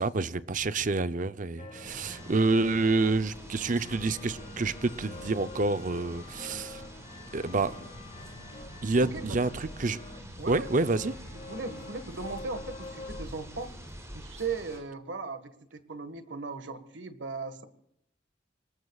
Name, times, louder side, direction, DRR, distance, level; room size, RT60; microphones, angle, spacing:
voice 1, 0.0-6.8 7.3-7.9 8.8-10.0 10.5-11.2, right 3 dB, 45° right, 0.6 m, -28 dB
sound 1, 1.6-13.4, left 3 dB, 45° left, 2.8 m, -46 dB
sound 2, 1.8-14.8, equal, 15° right, 5.6 m, -46 dB
voice 2, 10.4-10.7 11.4-13.7 14.1-17.6, right 4 dB, 85° right, 1.6 m, -37 dB
26.0 x 20.5 x 2.4 m
head